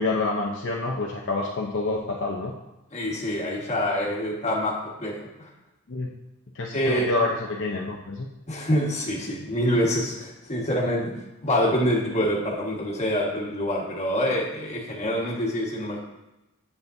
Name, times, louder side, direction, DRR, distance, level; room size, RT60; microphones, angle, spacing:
voice 1, 0.0-2.5 5.9-6.1 6.5-8.3, left 3 dB, 55° left, -2 dB, 0.7 m, -27 dB
voice 2, 2.9-5.5 6.7-7.1 8.5-11.0 11.4-16.0, equal, 30° left, -3 dB, 1.5 m, -26 dB
8.2 x 6.9 x 2.7 m, 0.98 s
head